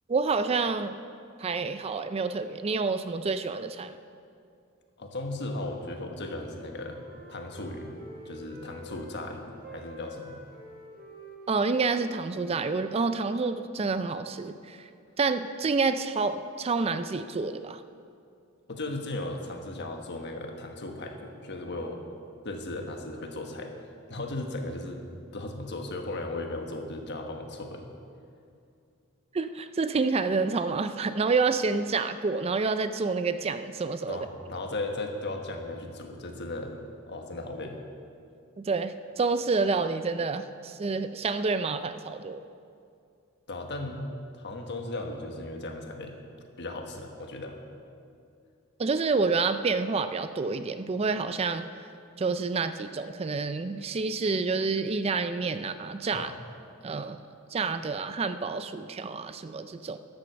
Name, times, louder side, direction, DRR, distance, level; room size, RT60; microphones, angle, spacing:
voice 1, 0.1-1.0 1.4-4.0 11.5-14.8 15.2-17.8 29.3-34.2 38.6-42.4 48.8-51.6 52.2-56.3 56.8-57.2 57.5-60.0, right 4 dB, 30° right, 11 dB, 0.4 m, -28 dB
voice 2, 5.0-7.0 7.3-7.9 8.2-10.4 18.7-22.0 22.4-23.7 24.1-25.0 25.3-27.9 34.1-36.7 37.1-37.8 43.5-46.1 46.6-47.6 56.1-56.4, left 2 dB, 55° left, 3 dB, 1.4 m, -36 dB
Wind instrument woodwind instrument, 5.8-9.2 9.5-13.4, equal, 45° right, 1.7 m, -49 dB
12.5 x 7.9 x 6.9 m, 2.4 s
head